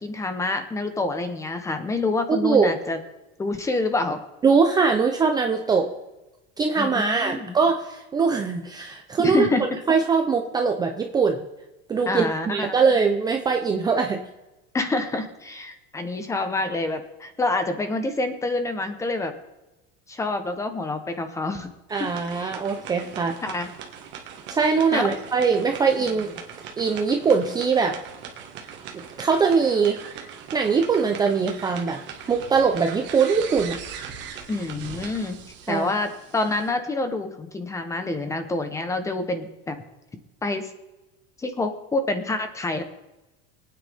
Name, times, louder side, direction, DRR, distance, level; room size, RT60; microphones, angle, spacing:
voice 1, 0.0-3.0 3.4-4.2 6.8-7.6 9.2-9.6 12.1-12.7 14.7-19.3 20.1-21.7 22.0-22.5 23.4-23.7 24.9-25.1 34.5-35.4 35.7-39.8 40.4-40.7 41.4-42.8, left 2 dB, 10° left, 8 dB, 0.9 m, -27 dB
voice 2, 2.3-2.7 4.4-5.9 6.6-9.5 9.9-11.4 11.9-14.2 21.9-23.3 24.5-26.3 26.8-28.0 28.9-30.0 30.5-32.0 32.3-33.8 35.7-35.9, right 5 dB, 15° right, 3 dB, 0.6 m, -22 dB
sound 1, 21.9-36.7, right 7 dB, 35° right, 1.7 m, -40 dB
23.5 x 9.2 x 3.5 m, 1.0 s
cardioid pair, 170°, 30 cm